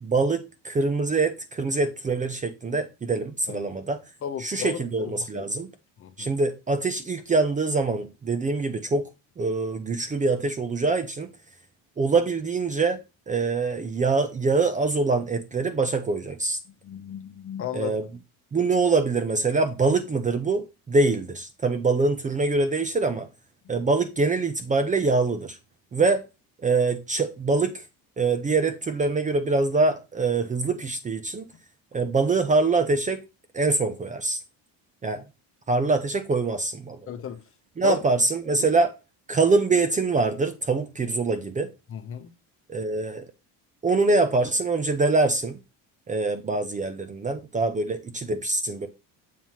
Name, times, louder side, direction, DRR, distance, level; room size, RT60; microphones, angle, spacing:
voice 1, 0.0-4.0 4.4-5.7 6.2-9.1 9.4-11.3 12.0-13.0 13.3-16.6 17.7-18.1 18.5-23.3 23.7-25.6 25.9-26.2 26.6-27.8 28.2-31.5 31.9-33.2 33.5-34.4 35.0-35.3 35.7-37.0 37.8-38.9 39.3-41.7 42.7-43.3 43.8-45.6 46.1-48.9, right 3 dB, 20° right, 0.6 m, -24 dB
voice 2, 4.2-5.5 6.0-6.3 16.8-17.9 37.1-37.4 37.8-38.0 41.9-42.3, left 8 dB, 35° left, 0.9 m, -34 dB
7.4 x 3.1 x 5.6 m
cardioid pair, 135°, 39 cm